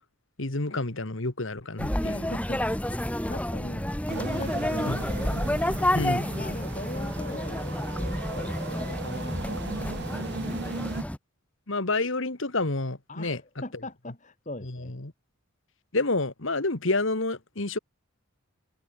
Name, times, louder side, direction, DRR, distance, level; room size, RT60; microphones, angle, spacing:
voice 1, 0.4-2.3 4.9-5.0 5.9-6.3 11.7-13.4 14.6-15.1 15.9-17.8, left 2 dB, 60° left, 1.8 m, -29 dB
sound 1, 1.8-11.2, left 1 dB, 5° left, 1.1 m, -30 dB
voice 2, 2.3-2.6 3.3-5.0 6.4-10.3 13.1-14.9, left 1 dB, 35° left, 3.5 m, -40 dB
sound 2, 4.1-11.0, right 3 dB, 50° right, 0.8 m, -38 dB
head